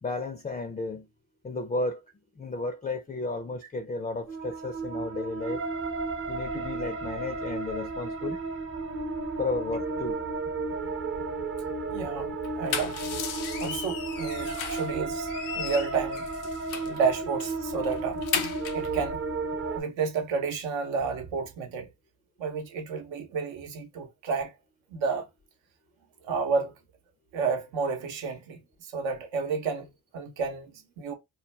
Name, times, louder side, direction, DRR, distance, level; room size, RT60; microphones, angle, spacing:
voice 1, 0.0-1.1 1.4-2.0 2.4-5.6 6.3-8.4 9.4-10.2, left 3 dB, 15° left, 0.4 m, -33 dB
sound 1, 4.3-19.8, right 3 dB, 30° right, 0.6 m, -33 dB
voice 2, 11.9-13.2 13.6-16.3 16.8-19.2 19.7-21.9 22.4-24.5 24.9-25.3 26.2-26.7 27.3-29.9 30.1-31.1, right 5 dB, 70° right, 0.8 m, -31 dB
sound 2, 12.4-14.9 15.3-17.0 17.4-17.5 17.8-18.9, left 8 dB, 90° left, 0.6 m, -35 dB
2.3 x 2.2 x 3.1 m
hypercardioid pair, 45°, 47 cm